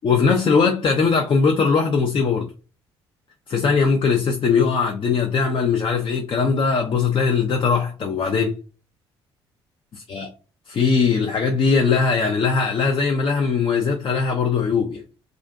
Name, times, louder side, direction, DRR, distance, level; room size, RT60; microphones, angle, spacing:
voice 1, 0.0-2.5 3.5-8.6 10.1-10.3 10.7-15.0, left 5 dB, 40° left, 0.5 m, -20 dB
2.5 x 2.4 x 2.2 m
hypercardioid pair, 55°, 13 cm